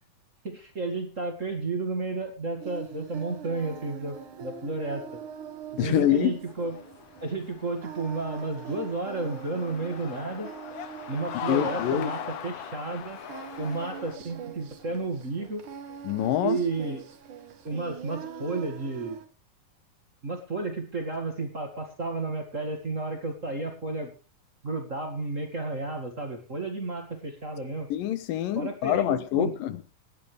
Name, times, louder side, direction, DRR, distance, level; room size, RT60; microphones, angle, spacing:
voice 1, 0.4-5.0 5.8-6.8 7.2-10.5 11.1-13.2 13.6-15.6 16.4-17.0 17.6-19.2 20.2-24.1 24.6-27.9 28.5-29.5, right 3 dB, 25° right, 4 dB, 2.0 m, -32 dB
Singing, 2.6-19.3, right 8 dB, 70° right, 3.2 m, -43 dB
voice 2, 5.8-6.4 11.5-12.1 16.0-16.6 27.9-29.8, left 11 dB, 85° left, 13 dB, 2.8 m, -25 dB
sound 1, 6.5-14.2, left 9 dB, 60° left, 1.7 m, -40 dB
18.5 x 11.0 x 3.4 m, 0.34 s
omnidirectional pair, 3.9 m